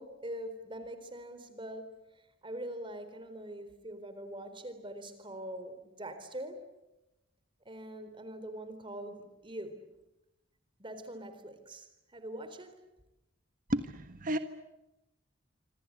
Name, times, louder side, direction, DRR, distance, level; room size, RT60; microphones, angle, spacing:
voice 1, 0.0-6.6 7.6-9.9 10.8-11.9 12.1-12.8, right 1 dB, 25° right, 4.0 m, -43 dB
voice 2, 13.7-14.4, right 1 dB, 45° right, 1.5 m, -32 dB
27.5 x 25.5 x 8.3 m
head